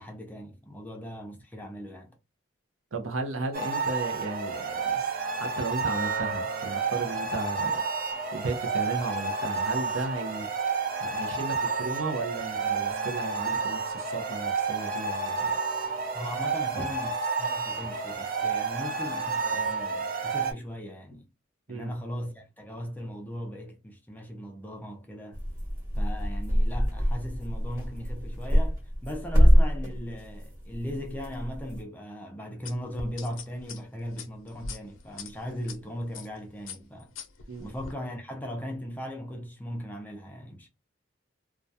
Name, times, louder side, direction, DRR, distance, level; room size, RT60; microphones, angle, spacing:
voice 1, 0.0-2.1 16.1-21.3 21.7-25.4 26.0-37.1 37.6-40.7, equal, 10° left, 0.5 m, -38 dB
voice 2, 2.9-7.8 8.3-10.5 11.0-15.6 16.7-16.8 21.7-21.9 37.5-37.7, right 3 dB, 85° right, 0.6 m, -35 dB
sound 1, 3.5-20.5, right 4 dB, 45° right, 0.5 m, -30 dB
sound 2, 25.3-31.8, equal, 15° right, 1.1 m, -25 dB
sound 3, 32.6-35.8 36.1-36.4 36.7-37.9, left 4 dB, 85° left, 0.5 m, -41 dB
2.3 x 2.2 x 2.6 m
head